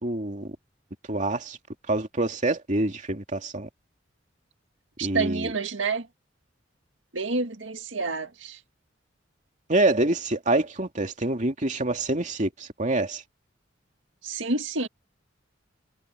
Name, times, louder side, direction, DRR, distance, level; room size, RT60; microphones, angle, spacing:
voice 1, 0.0-0.6 1.1-1.6 1.9-3.7 5.0-5.5 9.7-13.2, right 2 dB, 40° right, 2.6 m, -26 dB
voice 2, 5.0-6.1 7.1-8.6 14.2-14.9, right 4 dB, 85° right, 2.0 m, -28 dB
head